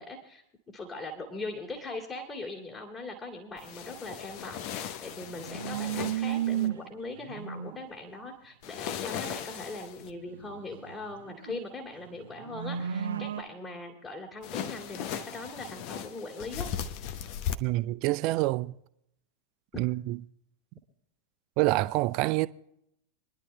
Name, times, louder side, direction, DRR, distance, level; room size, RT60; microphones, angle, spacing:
voice 1, 0.0-16.7, left 2 dB, 25° left, 2.7 m, -40 dB
sound 1, 3.6-6.7 8.6-10.1 14.4-17.5, left 9 dB, 45° left, 0.8 m, -37 dB
sound 2, 5.1-6.9 7.2-7.8 10.2-11.5 12.0-13.4, right 10 dB, 60° right, 0.9 m, -34 dB
voice 2, 17.6-18.7 19.8-20.2 21.6-22.5, right 19 dB, 45° right, 0.4 m, -27 dB
27.5 x 11.0 x 2.2 m
figure-of-eight pair, 90°, 0 cm